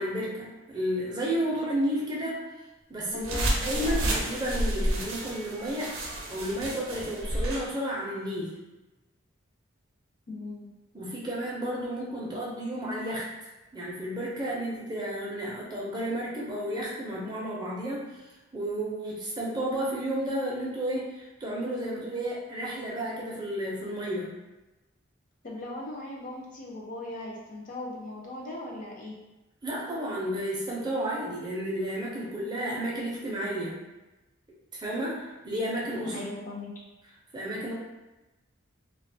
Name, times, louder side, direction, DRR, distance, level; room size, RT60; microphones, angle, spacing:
voice 1, 0.0-2.4 2.9-6.0 6.3-8.5 10.9-13.3 13.7-18.2 18.5-24.3 29.6-33.8 34.7-36.1 37.3-37.7, right 1 dB, 20° right, -5 dB, 0.4 m, -32 dB
voice 2, 3.1-4.1 10.3-10.7 25.4-29.1 36.1-36.7, left 2 dB, 40° left, -3 dB, 0.4 m, -38 dB
sound 1, 3.2-7.7, right 1 dB, 80° right, 0.5 m, -30 dB
2.3 x 2.2 x 2.6 m, 1.1 s
head